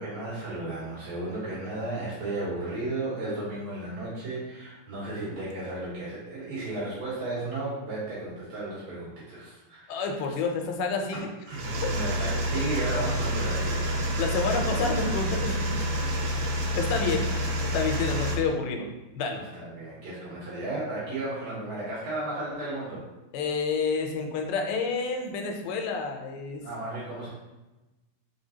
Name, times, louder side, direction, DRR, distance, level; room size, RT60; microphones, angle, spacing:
voice 1, 0.0-10.1 11.1-13.8 19.3-23.0 26.6-27.3, right 2 dB, 60° right, -8 dB, 2.3 m, -34 dB
voice 2, 9.9-11.3 14.2-16.1 16.8-17.3 17.7-18.9 19.1-19.4 23.3-26.6, left 4 dB, 90° left, 3 dB, 2.5 m, -29 dB
sound 1, 11.5-18.4, equal, 80° right, 1.6 m, -28 dB
5.2 x 3.7 x 2.7 m, 1.1 s
omnidirectional pair, 4.2 m